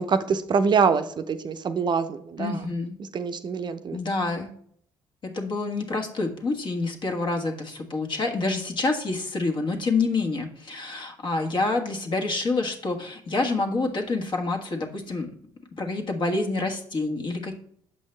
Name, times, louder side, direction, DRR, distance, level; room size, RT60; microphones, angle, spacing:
voice 1, 0.0-2.6 3.1-4.0, right 5 dB, 45° right, 10 dB, 0.6 m, -24 dB
voice 2, 2.4-2.9 3.9-4.5 5.2-15.3 15.8-17.6, left 3 dB, 50° left, 3 dB, 1.4 m, -27 dB
7.1 x 5.4 x 3.2 m, 0.64 s
supercardioid pair, 70°, 11 cm